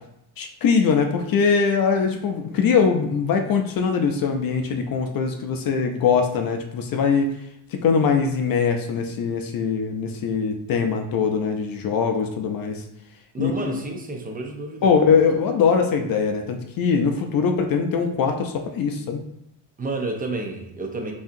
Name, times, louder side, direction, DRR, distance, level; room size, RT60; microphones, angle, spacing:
voice 1, 0.4-7.3 7.7-12.8 13.4-13.8 14.8-19.2, left 5 dB, 50° left, 5 dB, 0.5 m, -22 dB
voice 2, 13.3-14.9 19.8-21.1, right 2 dB, 20° right, 2 dB, 0.7 m, -30 dB
5.2 x 2.8 x 2.6 m, 0.80 s
cardioid pair, 115°, 44 cm